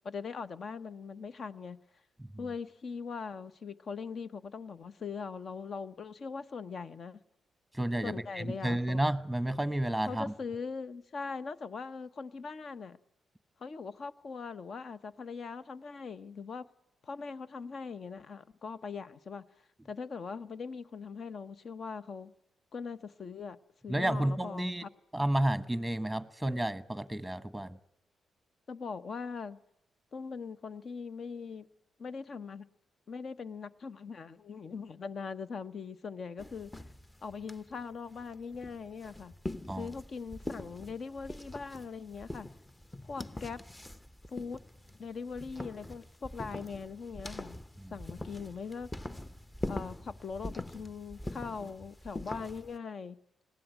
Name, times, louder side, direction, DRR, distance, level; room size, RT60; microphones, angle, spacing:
voice 1, 0.0-1.8 2.4-7.2 8.0-9.0 10.1-13.0 13.6-16.7 17.0-19.4 19.8-22.3 22.7-23.6 23.8-24.9 28.7-29.6 30.1-31.7 32.0-32.7 33.1-36.7 37.2-39.3 39.7-42.5 43.0-43.6 44.3-44.6 45.0-47.6 47.9-48.9 49.7-53.2, left 5 dB, 55° left, 0.9 m, -41 dB
voice 2, 7.7-10.3 23.9-24.8 25.1-27.8 39.7-39.9 47.8-47.9, right 1 dB, 5° right, 1.2 m, -31 dB
sound 1, 36.4-52.8, left 1 dB, 15° left, 0.9 m, -44 dB
20.0 x 16.0 x 9.2 m
hypercardioid pair, 45°, 0 cm